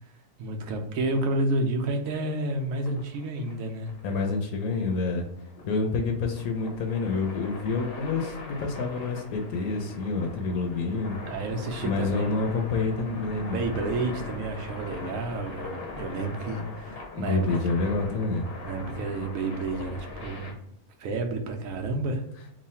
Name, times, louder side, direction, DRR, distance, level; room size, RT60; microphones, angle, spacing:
voice 1, 0.4-3.9 11.3-12.3 13.5-17.4 18.6-20.5 21.0-22.2, right 2 dB, 65° right, 4 dB, 1.0 m, -30 dB
sound 1, 2.2-20.5, left 2 dB, 50° left, 0.8 m, -41 dB
voice 2, 4.0-5.2 5.7-11.2 11.8-13.6 17.1-18.5, left 3 dB, 75° left, 3 dB, 1.0 m, -28 dB
3.1 x 2.3 x 4.1 m, 0.78 s
omnidirectional pair, 1.6 m